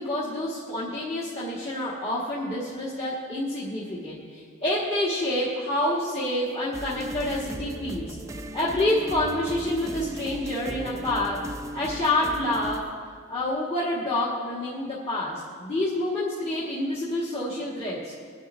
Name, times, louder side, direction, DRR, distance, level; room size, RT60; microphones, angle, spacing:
voice 1, 0.0-8.1 8.5-11.4 11.7-12.9 13.3-18.1, left 1 dB, 25° left, -7 dB, 1.7 m, -28 dB
sound 1, 6.7-12.8, right 1 dB, 15° right, 0.5 m, -36 dB
23.5 x 9.8 x 2.7 m, 2.1 s
head